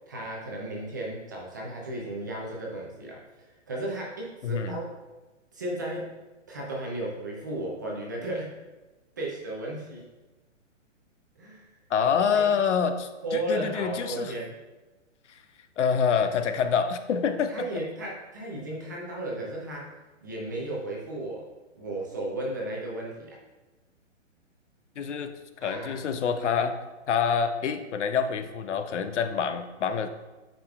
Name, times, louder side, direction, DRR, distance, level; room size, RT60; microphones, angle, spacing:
voice 1, 0.1-4.9 5.5-6.1 6.5-8.5 9.2-10.0 11.4-11.7 12.3-12.5 13.2-14.5 17.5-19.9 20.2-21.5 21.7-23.4 25.6-26.0, right 1 dB, 15° right, -3 dB, 0.5 m, -34 dB
voice 2, 4.4-4.8 11.9-14.3 15.8-17.7 25.0-25.3 25.6-26.8 27.1-30.1, left 6 dB, 65° left, 9 dB, 0.7 m, -26 dB
8.9 x 5.1 x 2.4 m, 1.2 s
hypercardioid pair, 160°, 38 cm